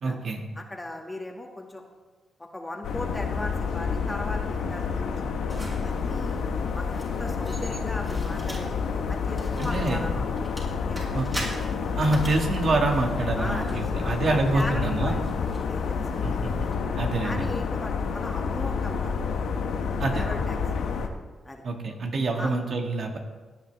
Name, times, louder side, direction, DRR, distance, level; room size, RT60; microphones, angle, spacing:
voice 1, 0.0-0.4 9.6-10.1 11.1-11.3 12.0-15.1 16.2-16.5 17.0-17.4 20.0-20.3 21.6-23.2, right 2 dB, 60° right, 2 dB, 1.8 m, -26 dB
voice 2, 0.6-1.8 2.4-5.3 5.8-6.4 6.7-10.3 10.9-11.0 13.4-15.3 15.7-16.5 17.2-19.1 20.1-20.6 21.5-21.6 22.4-22.5, left 1 dB, 15° left, 1 dB, 1.9 m, -37 dB
sound 1, 2.8-21.1, left 5 dB, 85° left, 1.1 m, -29 dB
sound 2, 5.5-16.7, right 1 dB, 25° right, 4.2 m, -44 dB
18.0 x 9.9 x 3.4 m, 1.3 s
cardioid pair, 85°, 0 cm